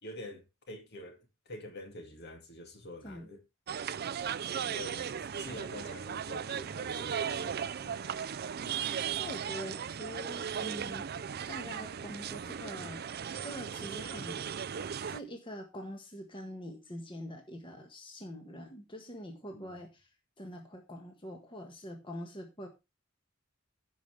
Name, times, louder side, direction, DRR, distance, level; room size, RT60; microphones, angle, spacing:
voice 1, 0.0-3.4 4.7-8.2 19.5-19.8, left 1 dB, 55° left, 2.3 m, -47 dB
sound 1, 3.7-15.2, right 7 dB, 50° right, 0.5 m, -37 dB
voice 2, 8.6-11.1 11.4-13.1 13.4-14.4 15.1-20.1 20.4-22.7, equal, 25° left, 1.6 m, -44 dB
15.5 x 5.6 x 3.3 m
head